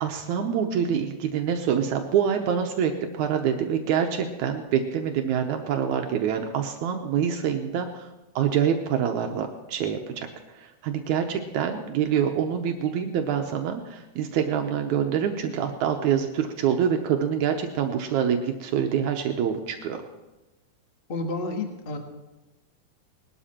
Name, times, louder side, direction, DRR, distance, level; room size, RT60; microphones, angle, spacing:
voice 1, 0.0-8.1 8.4-10.0 10.5-20.0, right 8 dB, 80° right, 4 dB, 2.3 m, -26 dB
voice 2, 21.1-22.0, left 3 dB, 30° left, 3 dB, 1.0 m, -30 dB
20.0 x 12.5 x 4.3 m, 1.1 s
omnidirectional pair, 3.4 m